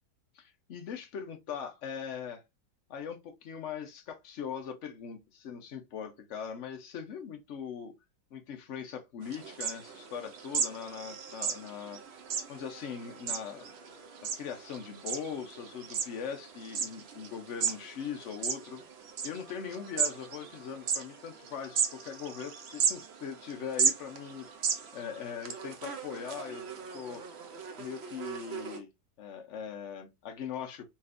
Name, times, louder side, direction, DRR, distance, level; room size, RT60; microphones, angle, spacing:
voice 1, 0.3-2.4 2.9-7.9 8.3-12.0 12.5-13.7 14.2-18.8 19.2-24.5 24.9-27.2 27.8-28.9 29.2-30.8, left 7 dB, 55° left, 0.9 m, -40 dB
sound 1, 9.2-28.8, right 6 dB, 60° right, 0.7 m, -36 dB
4.1 x 3.2 x 2.5 m
omnidirectional pair, 1.8 m